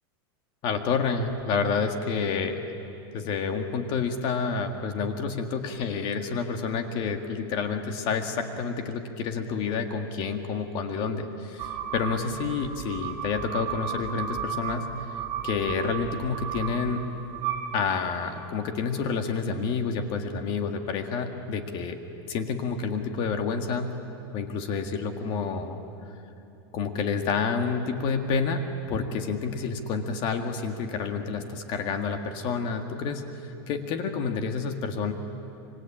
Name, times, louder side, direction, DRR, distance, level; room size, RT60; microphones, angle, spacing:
voice 1, 0.6-2.6 3.1-14.9 15.4-17.0 17.7-22.0 22.3-23.9 24.3-25.8 26.7-35.1, left 5 dB, 40° left, 6 dB, 1.9 m, -29 dB
sound 1, 11.6-18.3, right 7 dB, 35° right, 4.2 m, -34 dB
26.0 x 24.5 x 8.9 m, 2.8 s
supercardioid pair, 160°, 13 cm